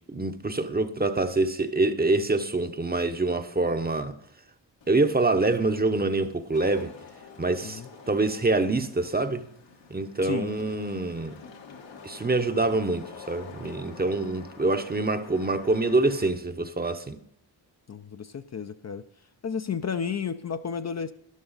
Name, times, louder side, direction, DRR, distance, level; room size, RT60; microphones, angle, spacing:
voice 1, 0.0-4.2 4.9-6.9 7.4-9.4 9.9-11.4 12.0-17.2, right 2 dB, 20° right, 0.8 m, -25 dB
Wind / Rain, 4.8-16.3, left 5 dB, 80° left, 1.7 m, -48 dB
voice 2, 17.9-19.0 19.4-21.1, left 6 dB, 40° left, 0.6 m, -32 dB
12.5 x 11.0 x 4.0 m
cardioid pair, 70°, 43 cm